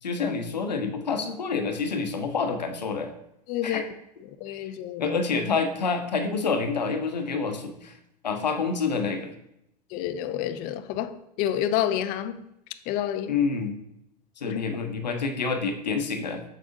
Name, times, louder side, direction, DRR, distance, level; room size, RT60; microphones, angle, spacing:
voice 1, 0.0-3.1 3.6-3.8 4.6-4.7 5.0-8.0 8.2-9.3 13.3-13.8 14.4-16.4, left 4 dB, 80° left, 0.9 m, -28 dB
voice 2, 3.5-3.8 4.4-5.2 9.9-12.4 12.9-13.3 14.5-14.6, left 11 dB, 45° left, 0.6 m, -29 dB
7.9 x 6.4 x 2.6 m
figure-of-eight pair, 80°, 21 cm